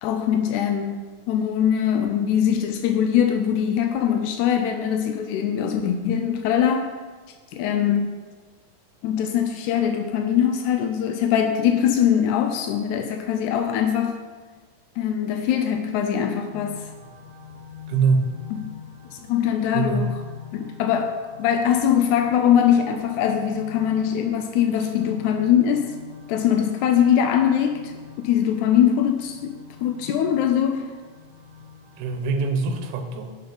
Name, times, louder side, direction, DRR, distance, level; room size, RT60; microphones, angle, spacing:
voice 1, 0.0-1.0 1.3-6.9 7.5-8.1 9.0-14.2 15.0-16.8 18.5-18.7 19.1-20.1 20.5-21.1 21.4-25.9 26.3-27.9 28.2-29.5 29.8-30.9, left 9 dB, 90° left, 5 dB, 1.7 m, -22 dB
sound 1, 16.5-32.2, left 7 dB, 55° left, 2.5 m, -44 dB
voice 2, 17.9-18.3 19.7-20.1 32.0-33.3, right 4 dB, 75° right, 5 dB, 2.2 m, -23 dB
6.7 x 5.6 x 5.2 m, 1.4 s
omnidirectional pair, 3.9 m